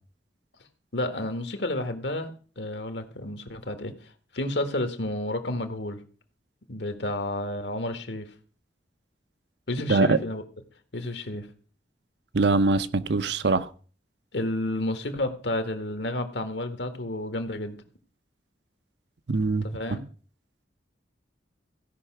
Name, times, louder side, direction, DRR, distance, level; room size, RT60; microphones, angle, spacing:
voice 1, 0.9-2.3 2.6-3.9 4.3-6.0 6.7-8.3 9.7-10.4 10.9-11.5 14.3-17.8 19.6-20.0, left 1 dB, 75° left, 1.7 m, -31 dB
voice 2, 12.3-13.7 19.3-19.6, right 3 dB, 70° right, 0.8 m, -22 dB
16.0 x 5.7 x 6.1 m
head